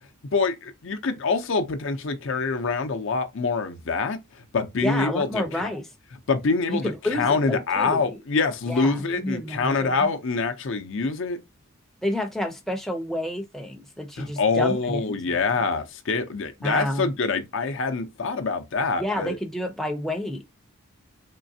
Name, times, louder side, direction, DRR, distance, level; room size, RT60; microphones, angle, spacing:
voice 1, 0.3-4.2 4.5-5.7 6.3-11.4 14.2-19.4, left 4 dB, 60° left, 0.6 m, -25 dB
voice 2, 4.8-5.9 6.7-8.2 8.7-10.1 12.0-15.4 16.6-17.1 19.0-20.5, left 1 dB, ahead, 0.5 m, -30 dB
3.7 x 3.2 x 2.6 m
head